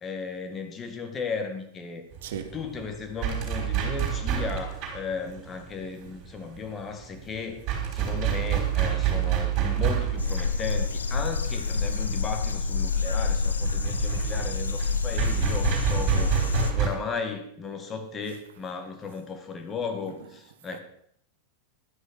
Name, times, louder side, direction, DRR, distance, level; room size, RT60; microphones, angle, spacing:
voice 1, 0.0-2.0 2.5-7.6 7.9-20.8, left 5 dB, 20° left, 1.8 m, -35 dB
sound 1, 2.1-16.9, right 9 dB, 40° right, 4.4 m, -29 dB
voice 2, 2.2-2.7 10.2-10.8 11.8-12.0 14.1-14.2 17.6-18.4 20.1-20.4 20.7-20.8, right 8 dB, 55° right, 1.4 m, -43 dB
sound 2, 10.2-16.7, left 4 dB, 75° left, 1.0 m, -27 dB
11.5 x 10.0 x 6.2 m
figure-of-eight pair, 90°, 0 cm